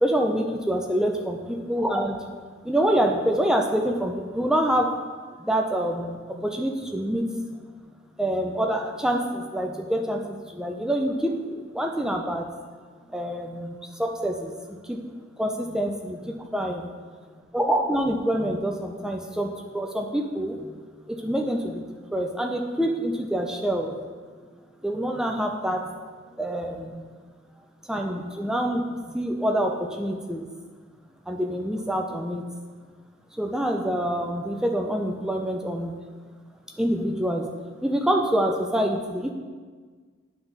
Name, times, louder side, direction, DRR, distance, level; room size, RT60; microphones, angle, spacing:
voice 1, 0.0-2.3 2.6-4.9 5.4-7.3 8.2-12.4 13.1-14.5 14.9-15.0 15.4-16.9 17.5-20.7 21.1-21.8 22.1-23.9 24.8-25.8 26.4-27.1 27.9-28.8 29.1-30.5 31.3-32.4 33.4-36.0 36.8-37.4 37.8-39.3, right 1 dB, 5° right, 3 dB, 0.4 m, -26 dB
9.7 x 3.4 x 4.0 m, 1.5 s
head